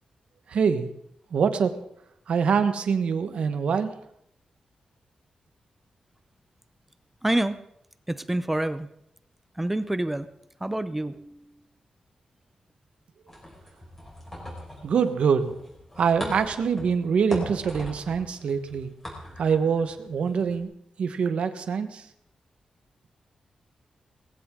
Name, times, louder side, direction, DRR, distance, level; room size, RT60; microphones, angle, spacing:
voice 1, 0.5-0.9 1.3-1.8 2.3-3.9 14.8-15.5 16.0-18.9 19.4-20.7 21.0-22.0, right 6 dB, 65° right, 9 dB, 1.3 m, -24 dB
voice 2, 7.2-7.6 8.1-8.9 9.6-10.3 10.6-11.4, right 1 dB, 10° right, 13 dB, 0.6 m, -27 dB
sound 1, 13.3-20.6, left 1 dB, 15° left, 5.0 m, -40 dB
19.0 x 16.0 x 3.8 m, 0.74 s
wide cardioid pair, 175°, 2 cm